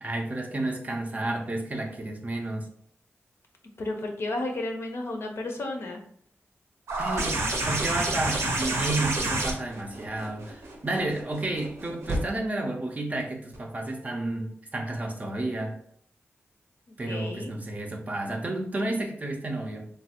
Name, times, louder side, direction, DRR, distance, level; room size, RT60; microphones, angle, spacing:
voice 1, 0.0-2.7 7.0-15.8 17.0-19.9, right 2 dB, 35° right, 2 dB, 0.4 m, -31 dB
voice 2, 3.8-6.0 17.1-17.5, left 2 dB, 60° left, 3 dB, 0.5 m, -32 dB
sound 1, 6.9-12.2 13.5-13.6, right 2 dB, 85° right, 0.7 m, -29 dB
3.1 x 2.2 x 2.8 m, 0.62 s
wide cardioid pair, 105°, 5 cm